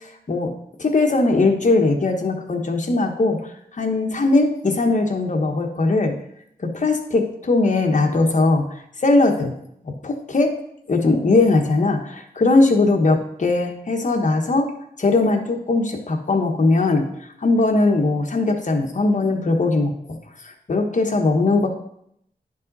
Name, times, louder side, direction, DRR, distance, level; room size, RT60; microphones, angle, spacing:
voice 1, 0.8-3.4 3.7-6.2 6.6-8.7 9.0-9.5 9.8-10.5 10.9-14.7 15.0-17.1 17.4-20.0 20.7-21.7, left 3 dB, 50° left, 3 dB, 1.2 m, -19 dB
10.0 x 5.3 x 4.0 m, 0.74 s
wide cardioid pair, 100°, 17 cm